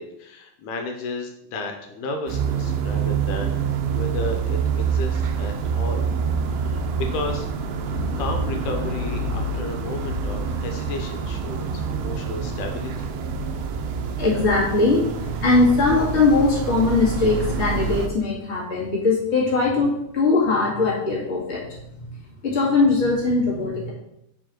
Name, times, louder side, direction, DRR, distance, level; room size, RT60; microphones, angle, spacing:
voice 1, 0.0-3.6 3.9-6.1 6.5-7.5 8.2-13.1, left 2 dB, 80° left, 4 dB, 2.2 m, -33 dB
sound 1, 2.3-18.1, right 5 dB, 80° right, 1.4 m, -26 dB
voice 2, 14.2-15.1 15.4-22.1 22.4-23.9, left 3 dB, 25° left, -5 dB, 1.9 m, -20 dB
4.9 x 4.6 x 6.0 m, 0.81 s
omnidirectional pair, 3.5 m